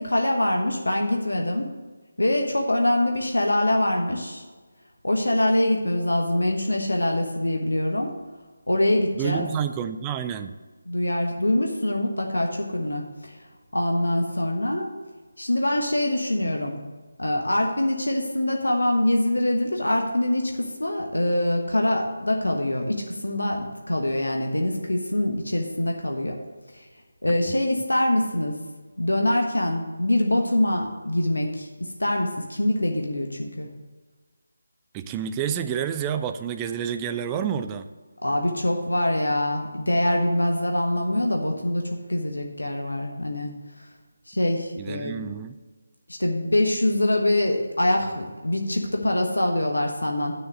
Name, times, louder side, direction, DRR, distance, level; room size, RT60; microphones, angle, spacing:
voice 1, 0.0-1.7 2.2-4.4 5.0-8.1 8.7-9.4 10.9-13.3 13.7-14.9 15.4-16.8 17.2-26.3 26.7-26.8 27.2-28.6 29.0-31.7 32.0-33.7 38.2-43.5 44.3-45.1 46.2-50.3, left 1 dB, 80° left, 2 dB, 1.2 m, -24 dB
voice 2, 9.2-10.5 34.9-37.9 44.8-45.6, right 8 dB, 15° right, 9 dB, 0.4 m, -29 dB
9.2 x 6.6 x 6.5 m, 1.4 s
figure-of-eight pair, 155°, 0 cm